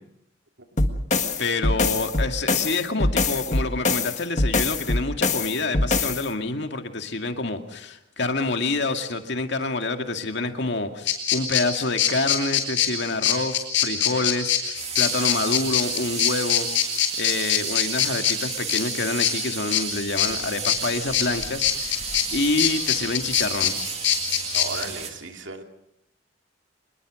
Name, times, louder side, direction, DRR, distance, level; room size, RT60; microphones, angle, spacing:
sound 1, 0.8-6.3, left 3 dB, 40° left, 1.8 m, -23 dB
voice 1, 1.4-23.8, left 3 dB, 65° left, 6 dB, 2.2 m, -27 dB
sound 2, 11.1-24.8, left 10 dB, 80° left, 6.3 m, -24 dB
sound 3, 14.8-25.1, right 7 dB, 35° right, 2.6 m, -33 dB
voice 2, 24.5-25.6, right 3 dB, 75° right, 4 dB, 2.8 m, -35 dB
25.5 x 21.0 x 6.4 m, 0.75 s
head